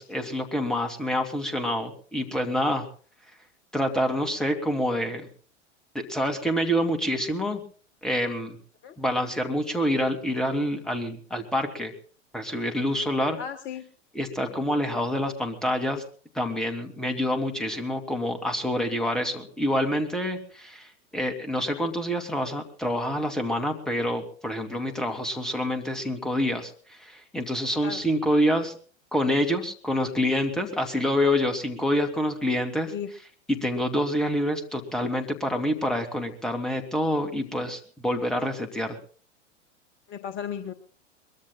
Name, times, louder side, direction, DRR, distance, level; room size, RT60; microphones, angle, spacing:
voice 1, 0.0-2.9 3.7-5.3 5.9-7.6 8.0-8.6 9.0-11.9 12.3-13.4 14.1-16.0 16.3-28.7 29.1-32.9 33.5-39.0, equal, ahead, 5 dB, 2.4 m, -27 dB
voice 2, 13.4-13.8 27.8-28.0 32.9-33.1 40.1-40.7, left 8 dB, 30° left, 8 dB, 1.3 m, -34 dB
23.0 x 22.0 x 2.3 m, 0.42 s
figure-of-eight pair, 95°, 38 cm